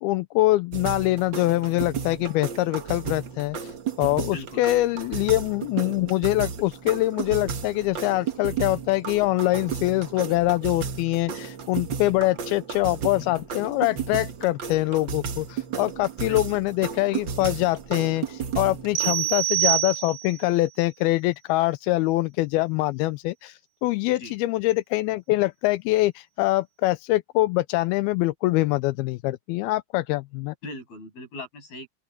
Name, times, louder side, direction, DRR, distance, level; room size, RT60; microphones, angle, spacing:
voice 1, 0.0-3.6 4.0-30.6, left 18 dB, 85° left, 2.5 m, -24 dB
sound 1, 0.7-19.1, right 6 dB, 80° right, 1.0 m, -33 dB
voice 2, 4.3-4.6 16.2-16.6 19.0-19.3 24.2-24.4 30.6-31.9, left 1 dB, 70° left, 9.9 m, -39 dB
sound 2, 19.0-20.5, right 15 dB, 65° right, 2.4 m, -25 dB
open air
omnidirectional pair, 4.5 m